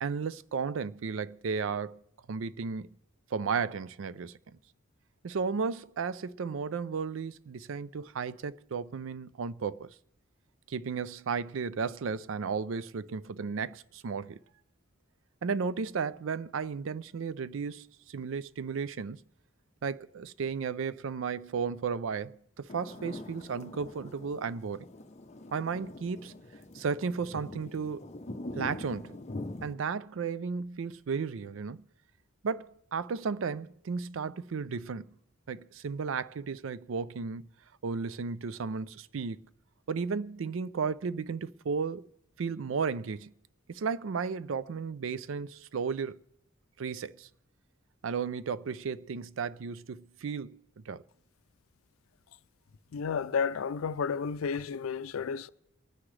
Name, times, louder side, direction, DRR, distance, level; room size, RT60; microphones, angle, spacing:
voice 1, 0.0-2.0 2.3-2.9 3.3-4.6 5.2-9.9 10.7-14.4 15.4-19.2 19.8-24.9 25.5-26.3 26.7-28.0 28.5-29.2 29.6-31.9 32.4-35.2 35.5-37.5 37.8-39.4 39.9-42.1 42.4-43.3 43.7-46.2 46.8-47.3 48.0-51.0, right 5 dB, 70° right, 0.4 m, -34 dB
sound 1, 22.7-29.7, left 2 dB, 35° left, 0.7 m, -43 dB
voice 2, 52.9-55.5, left 6 dB, 85° left, 0.4 m, -32 dB
27.5 x 9.7 x 3.2 m
head